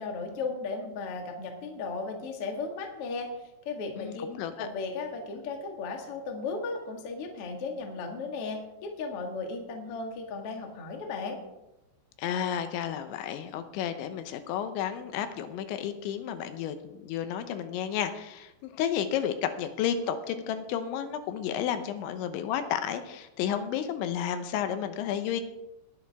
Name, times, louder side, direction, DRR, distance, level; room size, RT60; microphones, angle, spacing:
voice 1, 0.0-3.3 3.7-4.3 4.6-11.4, left 4 dB, 50° left, 2 dB, 1.9 m, -35 dB
voice 2, 4.0-4.7 12.2-25.4, left 9 dB, 85° left, 9 dB, 3.3 m, -32 dB
19.5 x 10.5 x 3.6 m, 0.94 s
omnidirectional pair, 5.3 m